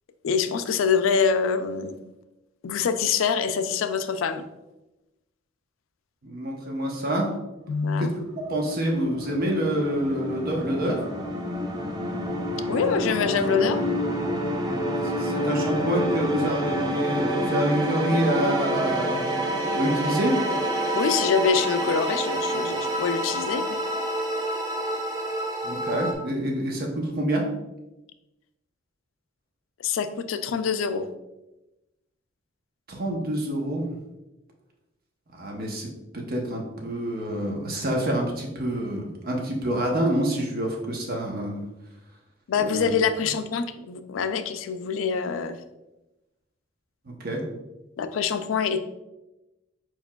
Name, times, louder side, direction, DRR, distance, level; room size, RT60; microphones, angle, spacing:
voice 1, 0.2-2.0 2.6-4.4 7.7-8.1 12.7-13.9 20.9-23.6 29.8-31.1 42.5-45.6 48.0-48.8, left 6 dB, 85° left, 10 dB, 0.4 m, -25 dB
voice 2, 6.2-7.3 8.5-11.0 15.1-19.2 19.7-20.3 25.6-26.9 27.2-27.4 32.9-34.0 35.4-35.9 36.1-41.7 42.6-42.9 47.1-47.4, right 1 dB, 50° right, 0 dB, 0.9 m, -27 dB
sound 1, 7.8-26.1, equal, 20° right, 0.6 m, -28 dB
4.6 x 4.5 x 2.3 m, 0.99 s
head